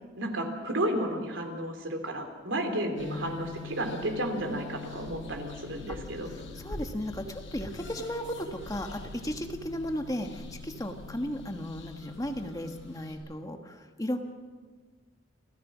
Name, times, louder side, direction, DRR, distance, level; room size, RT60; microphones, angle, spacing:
voice 1, 0.2-6.3, right 1 dB, 85° right, 5 dB, 3.3 m, -32 dB
sound 1, 3.0-13.2, left 3 dB, 80° left, 6.0 m, -44 dB
voice 2, 6.2-14.2, equal, 20° left, 5 dB, 1.3 m, -35 dB
28.5 x 15.0 x 6.3 m, 1.4 s
head